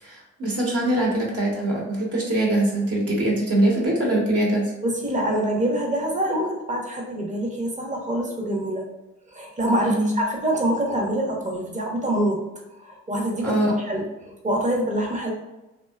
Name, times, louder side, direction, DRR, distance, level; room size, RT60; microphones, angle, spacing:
voice 1, 0.0-4.7 9.8-10.1 13.4-13.7, right 1 dB, 50° right, -3 dB, 1.0 m, -23 dB
voice 2, 4.8-8.9 9.3-12.4 12.8-13.6 13.9-14.1 14.4-15.3, right 1 dB, 25° right, 0 dB, 0.8 m, -25 dB
2.7 x 2.2 x 2.3 m, 1.0 s
supercardioid pair, 55°, 31 cm